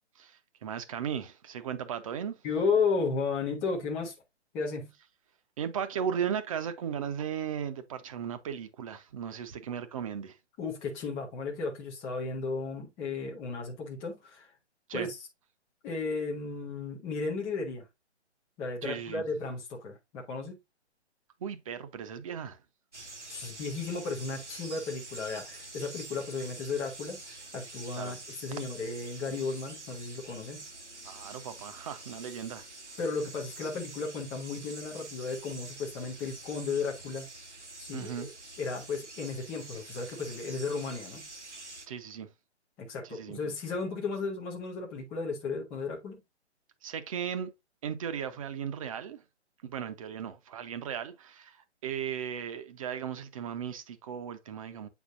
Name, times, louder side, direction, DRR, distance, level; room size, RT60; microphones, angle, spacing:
voice 1, 0.1-2.4 5.6-10.4 14.9-15.1 18.8-19.2 21.4-22.6 28.0-28.2 31.0-32.7 37.9-38.3 41.9-42.3 43.0-43.4 46.8-47.5 47.8-49.2 49.6-54.9, right 8 dB, 30° right, 0.9 m, -36 dB
voice 2, 2.4-4.1 4.5-4.9 10.6-14.5 14.9-15.2 15.8-17.9 18.6-20.6 23.3-30.7 33.0-37.3 37.8-38.3 38.6-41.3 42.8-46.2, left 4 dB, 5° left, 0.5 m, -34 dB
sound 1, 22.9-41.9, right 2 dB, 85° right, 2.2 m, -46 dB
8.1 x 5.0 x 2.5 m
figure-of-eight pair, 135°, 34 cm